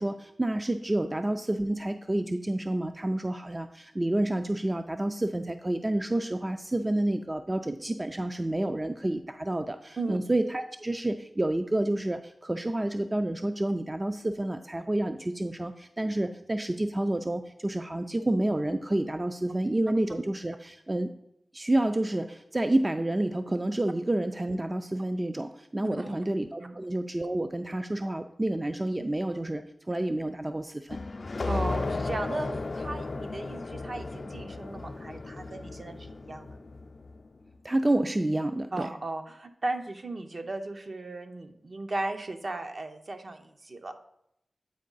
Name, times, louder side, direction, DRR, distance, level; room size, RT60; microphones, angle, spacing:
voice 1, 0.0-21.1 21.5-31.0 37.6-38.9, right 1 dB, 25° right, 7 dB, 0.4 m, -29 dB
sound 1, 30.9-37.3, left 3 dB, 55° left, 0.4 m, -35 dB
voice 2, 31.4-32.5 32.7-36.6 38.7-43.9, right 2 dB, 55° right, 5 dB, 0.7 m, -36 dB
8.4 x 4.5 x 3.9 m, 0.79 s
wide cardioid pair, 60°, 0 cm